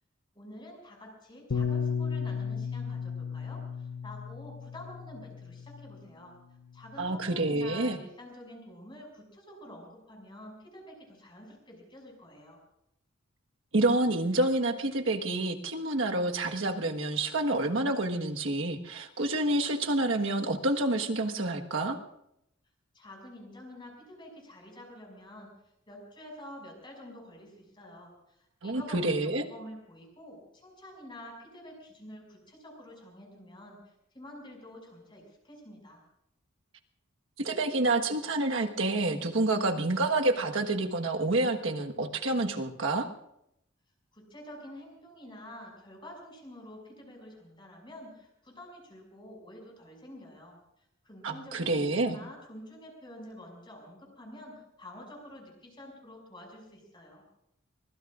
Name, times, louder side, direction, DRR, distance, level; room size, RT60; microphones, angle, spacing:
voice 1, 0.3-6.4 6.7-12.6 22.9-25.5 25.9-36.0 44.1-50.6 51.0-57.2, left 1 dB, 25° left, 0 dB, 6.3 m, -48 dB
Bass guitar, 1.5-6.0 6.8-7.8, left 6 dB, 70° left, 0.7 m, -35 dB
voice 2, 7.0-8.0 13.7-22.0 28.6-29.4 37.4-43.1 51.2-52.2, right 2 dB, 70° right, 4 dB, 1.4 m, -28 dB
24.5 x 22.5 x 2.5 m, 0.79 s
head